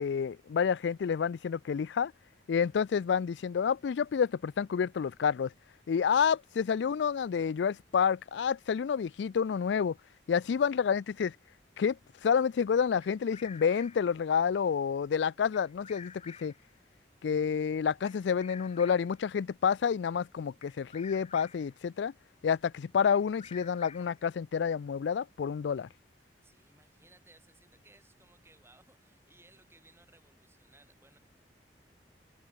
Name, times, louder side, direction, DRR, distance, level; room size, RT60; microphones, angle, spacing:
voice 1, 0.0-2.1 2.5-5.5 5.9-9.9 10.3-11.3 11.8-12.0 12.2-16.5 17.2-22.1 22.4-25.9, left 7 dB, 85° left, 0.4 m, -29 dB
Bird vocalization bird call bird song, 13.0-14.2 15.5-16.7 18.1-19.2 20.6-21.7 23.1-24.3, left 7 dB, 35° left, 2.7 m, -51 dB
voice 2, 26.4-31.2, right 2 dB, 15° right, 7.6 m, -62 dB
head